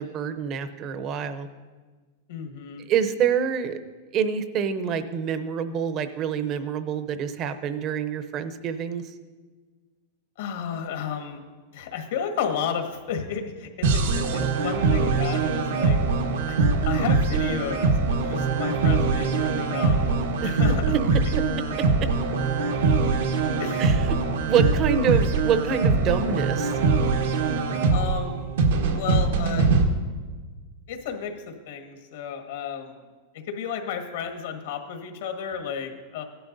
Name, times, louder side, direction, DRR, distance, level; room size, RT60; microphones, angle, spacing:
voice 1, 0.0-1.5 2.9-3.8 4.1-9.0 20.4-20.5 23.8-24.2 24.5-26.8, right 7 dB, 30° right, 11 dB, 0.7 m, -26 dB
voice 2, 2.3-2.9 10.4-11.4 11.7-16.0 16.5-16.6 16.8-20.1 20.4-20.9 23.6-23.9 27.9-28.4 28.9-29.7 30.9-33.0 33.3-36.2, left 7 dB, 70° left, 4 dB, 1.5 m, -32 dB
sound 1, 13.8-29.8, right 4 dB, 90° right, 1.4 m, -23 dB
16.0 x 11.0 x 2.7 m, 1.4 s
supercardioid pair, 155°, 0 cm